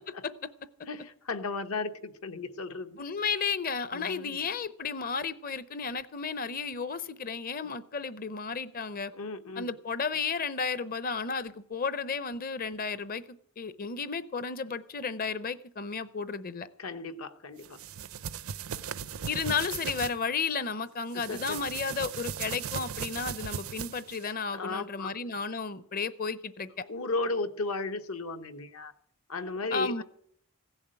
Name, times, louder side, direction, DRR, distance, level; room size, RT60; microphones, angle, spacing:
voice 1, 0.8-3.0 3.9-4.5 9.1-9.7 16.8-17.8 21.1-21.6 24.5-25.4 26.9-28.9 29.3-30.0, left 3 dB, 75° left, 1.1 m, -35 dB
voice 2, 3.0-9.1 9.6-16.7 19.3-26.8 29.7-30.0, left 5 dB, 40° left, 0.7 m, -33 dB
sound 1, 17.6-20.1 21.1-24.3, right 7 dB, 70° right, 0.5 m, -37 dB
16.0 x 7.2 x 8.9 m
head